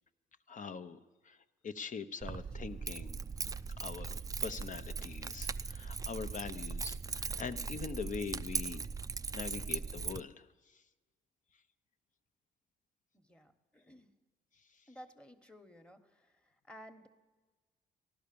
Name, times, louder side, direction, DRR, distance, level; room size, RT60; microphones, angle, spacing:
voice 1, 0.5-1.4 1.6-3.2 3.8-4.2 4.4-8.9 9.3-10.8, left 5 dB, 45° left, 10 dB, 0.8 m, -43 dB
Keys jangling, 2.2-10.2, right 5 dB, 20° right, 0.4 m, -39 dB
voice 2, 13.1-14.1 14.9-17.1, equal, 5° left, 9 dB, 1.3 m, -55 dB
14.5 x 11.5 x 6.9 m, 1.3 s
supercardioid pair, 70°, 19 cm